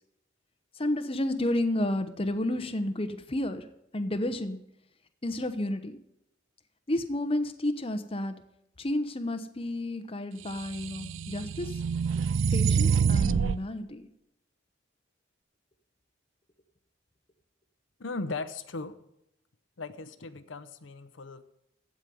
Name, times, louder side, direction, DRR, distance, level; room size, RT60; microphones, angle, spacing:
voice 1, 0.8-3.7 3.9-4.6 5.2-6.0 6.9-8.3 8.8-11.8 12.5-14.1, left 1 dB, 30° left, 8 dB, 0.9 m, -31 dB
sound 1, 10.7-13.6, right 6 dB, 80° right, 0.4 m, -26 dB
voice 2, 18.0-19.0 19.8-21.4, left 3 dB, 75° left, 11 dB, 0.8 m, -37 dB
15.5 x 5.2 x 9.4 m, 0.80 s
head